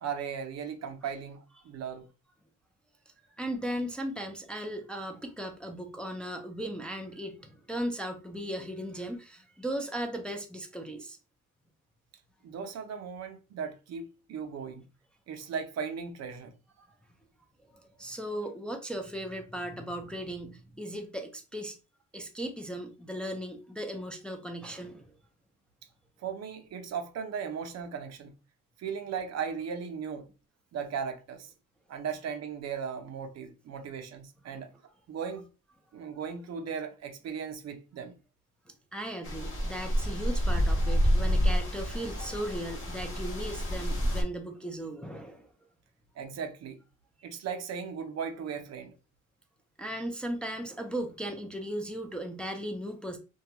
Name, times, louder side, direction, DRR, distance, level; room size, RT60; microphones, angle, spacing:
voice 1, 0.0-2.1 12.4-14.8 15.3-16.5 26.2-28.3 28.8-30.3 30.7-31.5 31.9-34.7 35.1-35.4 35.9-38.1 46.2-46.8 47.2-48.9, right 6 dB, 60° right, 0.6 m, -37 dB
voice 2, 3.4-11.2 18.0-21.8 22.1-25.1 38.9-45.5 49.8-53.2, right 1 dB, 5° left, 0.4 m, -37 dB
sound 1, 39.2-44.2, equal, 40° left, 0.8 m, -28 dB
2.2 x 2.2 x 2.8 m
cardioid pair, 90°, 30 cm